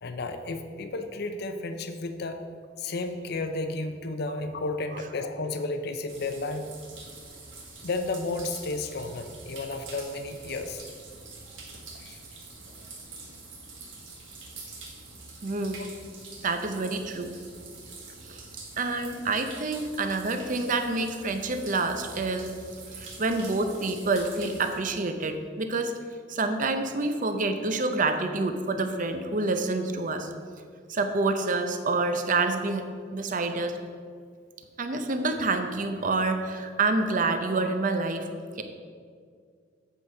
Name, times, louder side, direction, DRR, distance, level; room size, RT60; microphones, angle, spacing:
voice 1, 0.0-2.4 2.8-6.7 7.8-10.8 12.0-12.2, left 2 dB, 55° left, 7 dB, 0.6 m, -32 dB
sound 1, 6.1-24.7, right 3 dB, 90° right, 1.8 m, -45 dB
voice 2, 15.4-15.8 16.4-17.3 18.2-18.4 18.8-22.5 23.0-25.9 26.3-30.3 30.9-33.8 34.8-38.3 38.6-38.7, right 3 dB, 45° right, 7 dB, 0.6 m, -27 dB
8.3 x 5.0 x 5.4 m, 2.1 s
head